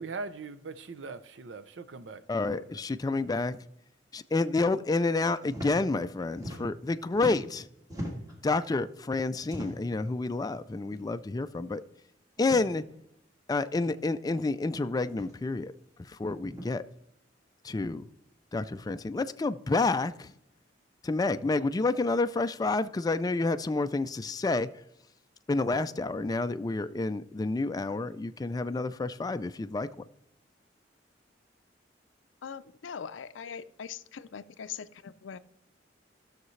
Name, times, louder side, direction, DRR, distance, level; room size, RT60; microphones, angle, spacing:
voice 1, 0.0-2.8, right 4 dB, 70° right, 0.6 m, -41 dB
voice 2, 2.3-3.6 4.1-7.7 8.4-11.8 12.4-12.8 13.5-15.7 16.1-16.8 17.6-18.1 18.5-20.3 21.0-24.7 25.5-29.9, left 3 dB, 20° left, 0.3 m, -29 dB
sound 1, 5.5-5.7 6.0-6.9 7.1-8.4 9.4-10.0 10.9-11.1 11.4-11.5 12.4-12.7 13.8-13.9 15.1-15.4 16.4-16.7, equal, 20° right, 1.8 m, -40 dB
voice 3, 32.4-35.4, left 7 dB, 90° left, 0.5 m, -41 dB
14.5 x 6.6 x 3.2 m
head